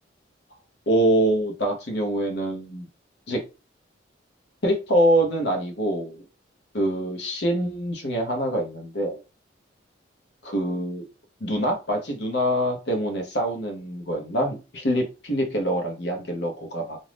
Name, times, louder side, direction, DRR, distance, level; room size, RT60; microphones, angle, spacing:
voice 1, 0.9-2.9 3.3-3.4 4.6-6.2 6.7-9.2 10.4-11.0 11.4-17.0, right 1 dB, 60° left, 3 dB, 0.9 m, -25 dB
2.6 x 2.3 x 3.3 m, 0.30 s
head